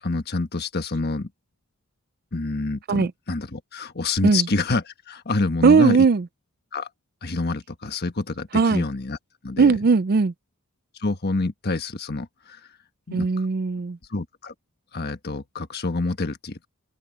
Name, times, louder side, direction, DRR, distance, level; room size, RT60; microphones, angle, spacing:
voice 1, 0.0-1.3 2.3-6.0 6.7-6.9 7.2-9.2 9.4-9.8 11.0-12.6 13.1-13.3 14.1-14.5 14.9-16.7, left 3 dB, 45° left, 1.4 m, -27 dB
voice 2, 5.6-6.2 8.5-8.8 9.6-10.3 13.1-14.0, right 4 dB, 45° right, 0.4 m, -18 dB
head